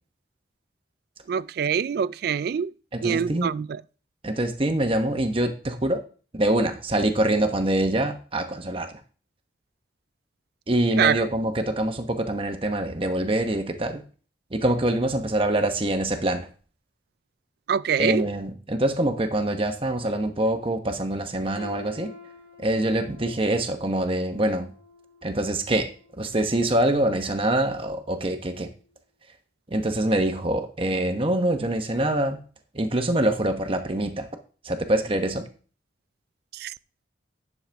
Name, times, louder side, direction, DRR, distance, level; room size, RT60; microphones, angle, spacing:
voice 1, 1.3-2.7 3.0-3.8 11.0-11.2 17.7-18.3 36.5-36.7, right 7 dB, 55° right, 0.3 m, -24 dB
voice 2, 3.0-3.5 4.2-6.0 6.3-8.9 10.7-14.0 14.5-16.5 18.0-22.1 22.6-24.7 25.2-25.9 26.2-28.7 29.7-32.4 32.7-34.3 34.6-35.5, right 1 dB, 30° right, 1.0 m, -25 dB
sound 1, 21.6-27.5 27.9-28.1 28.9-29.0, left 3 dB, 75° left, 2.1 m, -48 dB
10.5 x 6.6 x 3.5 m
head